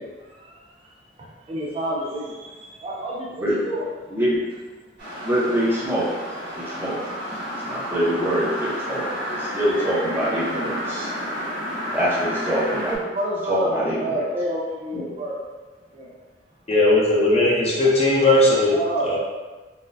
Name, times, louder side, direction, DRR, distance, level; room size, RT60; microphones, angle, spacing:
voice 1, 0.0-3.9 12.7-13.7 14.0-15.4 15.9-16.1 18.7-19.2, right 1 dB, 30° right, -4 dB, 0.4 m, -29 dB
sound 1, 5.0-13.0, equal, 70° right, 1.3 m, -31 dB
voice 2, 5.2-6.1 6.5-7.1 7.7-11.1 11.9-12.9 13.5-14.2 14.9-15.0, equal, 10° right, -8 dB, 0.8 m, -24 dB
voice 3, 16.7-18.7 19.0-19.2, left 2 dB, 35° left, -5 dB, 0.7 m, -18 dB
4.1 x 2.2 x 2.6 m, 1.3 s
head